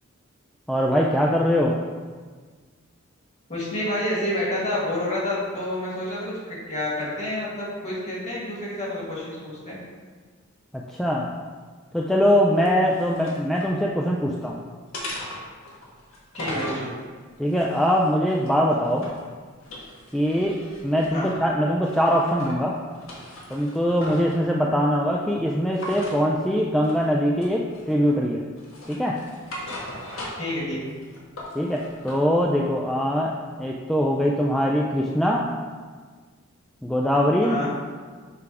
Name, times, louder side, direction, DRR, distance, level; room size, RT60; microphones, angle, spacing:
voice 1, 0.7-1.8 10.7-11.3 11.9-14.6 17.4-19.1 20.1-22.7 23.5-28.4 28.9-29.2 31.5-35.5 36.8-37.6, equal, ahead, -2 dB, 0.3 m, -22 dB
voice 2, 3.5-9.8 16.3-16.9 21.1-21.3 30.4-30.9 37.4-37.7, left 1 dB, 35° left, -6 dB, 1.8 m, -29 dB
sound 1, 12.6-13.7 14.2-14.5 14.9-16.9 17.5-19.3 19.6-21.4 21.8-22.6 22.9-24.4 25.7-26.2 26.8-27.1 27.4-28.1 28.6-30.6 30.9-32.2, left 1 dB, 75° left, 1.4 m, -38 dB
6.8 x 3.5 x 4.8 m, 1.5 s
head